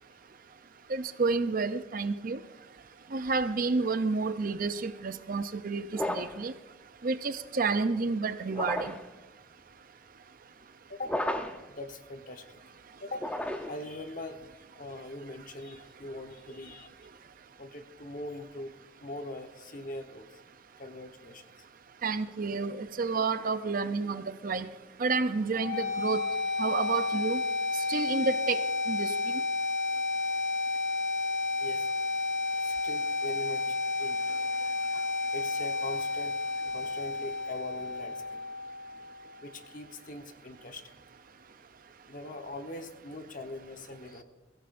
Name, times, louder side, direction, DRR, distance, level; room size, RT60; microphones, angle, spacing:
voice 1, 0.9-2.4 3.1-6.5 7.0-8.9 22.0-24.7 25.0-26.2 26.6-27.4 27.9-29.4, right 4 dB, 45° right, 11 dB, 0.6 m, -30 dB
sound 1, 5.9-6.5 8.5-9.1 11.0-11.7 13.1-13.9, left 1 dB, 5° left, 0.7 m, -33 dB
voice 2, 10.9-11.2 11.7-12.6 13.0-13.3 13.7-14.4 14.7-16.9 17.6-18.7 19.0-20.3 20.8-21.5 31.6-31.9 32.6-34.4 34.9-38.4 39.4-41.0 42.1-44.2, left 1 dB, 45° left, 6 dB, 1.1 m, -42 dB
sound 2, 25.5-39.5, left 3 dB, 65° left, 3.3 m, -31 dB
22.0 x 16.0 x 2.6 m, 1.1 s
head